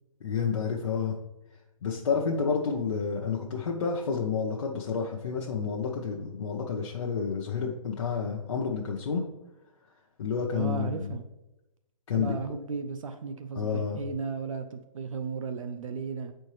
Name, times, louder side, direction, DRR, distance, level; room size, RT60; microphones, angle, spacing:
voice 1, 0.2-1.2 1.8-9.2 10.2-11.1 12.1-12.3 13.6-14.0, left 6 dB, 55° left, -2 dB, 0.7 m, -30 dB
voice 2, 10.5-11.2 12.1-16.3, right 5 dB, 65° right, 8 dB, 0.5 m, -35 dB
7.5 x 4.4 x 3.1 m, 0.97 s
hypercardioid pair, 165°, 18 cm